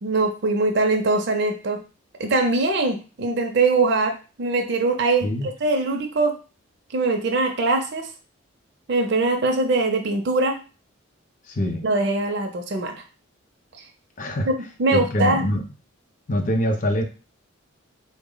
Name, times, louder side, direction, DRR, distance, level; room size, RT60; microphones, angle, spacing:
voice 1, 0.0-1.8 2.2-6.4 6.9-8.1 8.9-10.6 11.8-12.9 14.8-15.4, right 3 dB, 55° right, 3 dB, 0.4 m, -22 dB
voice 2, 11.5-11.8 14.2-14.5 14.9-15.6 16.3-17.0, equal, 40° left, 5 dB, 0.5 m, -24 dB
3.6 x 2.0 x 3.7 m, 0.34 s
head